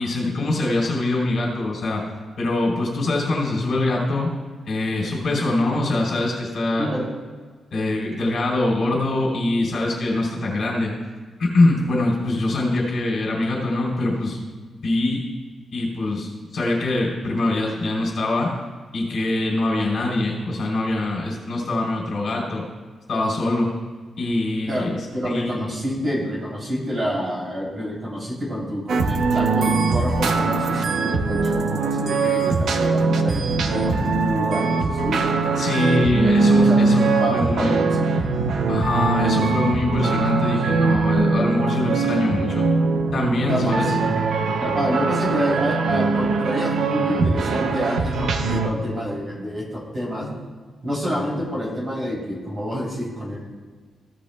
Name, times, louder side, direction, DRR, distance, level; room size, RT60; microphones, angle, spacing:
voice 1, 0.0-2.0 2.4-4.3 4.7-6.9 7.7-10.9 11.4-14.4 14.7-15.2 15.7-18.5 18.9-22.6 23.1-23.7 24.2-25.0 25.2-25.7 35.6-37.0 37.3-37.8 38.7-42.7 43.1-43.9, left 2 dB, 50° left, -3 dB, 3.2 m, -23 dB
voice 2, 25.1-35.3 36.0-36.3 36.6-38.2 43.5-43.9 44.6-50.3 50.8-53.4, equal, 30° right, -4 dB, 3.1 m, -28 dB
sound 1, 28.9-48.7, right 4 dB, 65° right, 0.7 m, -21 dB
15.5 x 10.5 x 2.2 m, 1.5 s
wide cardioid pair, 170°, 0 cm